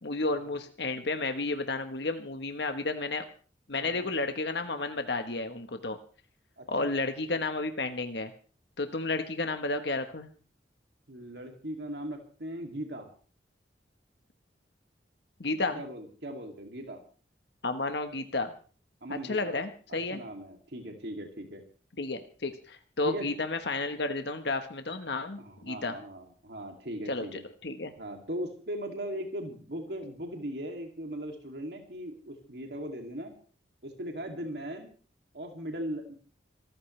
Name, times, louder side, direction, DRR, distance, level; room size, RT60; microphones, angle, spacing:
voice 1, 0.0-3.2 3.7-6.0 6.7-8.3 8.8-10.3 15.4-15.8 17.6-18.5 19.1-20.2 22.0-26.0 27.1-27.9, left 3 dB, 70° left, 7 dB, 1.2 m, -32 dB
voice 2, 3.8-4.1 6.6-7.0 11.1-13.1 15.7-17.0 19.0-19.6 19.9-21.6 23.0-23.3 25.4-27.4 28.0-33.3 33.8-34.9 35.3-36.1, equal, 70° right, 3 dB, 2.6 m, -39 dB
26.0 x 14.0 x 3.3 m, 0.40 s
head